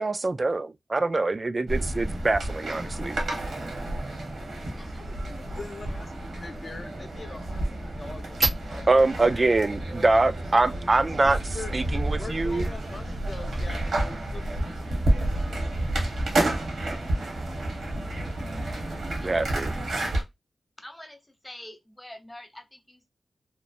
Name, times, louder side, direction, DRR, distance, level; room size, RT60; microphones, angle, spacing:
voice 1, 0.0-3.2 8.4-8.5 8.9-12.7 19.2-19.7, right 3 dB, 45° right, 0.3 m, -24 dB
sound 1, 1.7-20.2, right 1 dB, 80° right, 1.0 m, -30 dB
voice 2, 4.8-5.6 19.2-19.5 20.8-21.2 21.4-23.1, left 1 dB, 15° left, 0.9 m, -46 dB
voice 3, 5.5-8.4 8.7-9.5 9.8-10.2 10.7-11.7 12.2-14.6, left 3 dB, 55° left, 0.7 m, -43 dB
3.0 x 2.0 x 2.4 m
cardioid pair, 45°, 0 cm